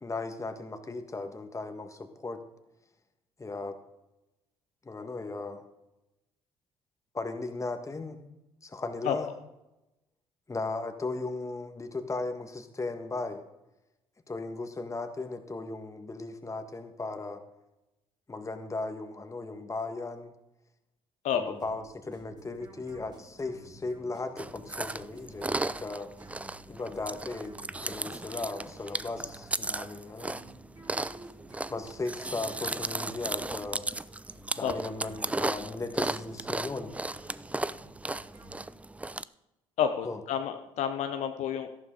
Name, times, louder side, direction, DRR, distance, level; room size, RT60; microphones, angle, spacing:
voice 1, 0.0-2.4 3.4-3.8 4.8-5.6 7.1-8.2 8.6-9.3 10.5-13.4 14.3-17.4 18.3-20.3 21.3-26.1 26.7-27.5 27.8-30.4 31.7-33.9 34.5-36.9 40.0-40.2, left 3 dB, 25° left, 7 dB, 1.6 m, -36 dB
sound 1, 21.6-39.1, right 1 dB, 30° right, 5.4 m, -53 dB
Chewing mastication, 24.4-39.2, right 2 dB, 10° right, 0.4 m, -35 dB
voice 2, 39.8-41.7, left 8 dB, 65° left, 7 dB, 0.8 m, -29 dB
13.5 x 11.5 x 3.8 m, 0.95 s
hypercardioid pair, 55°, 13 cm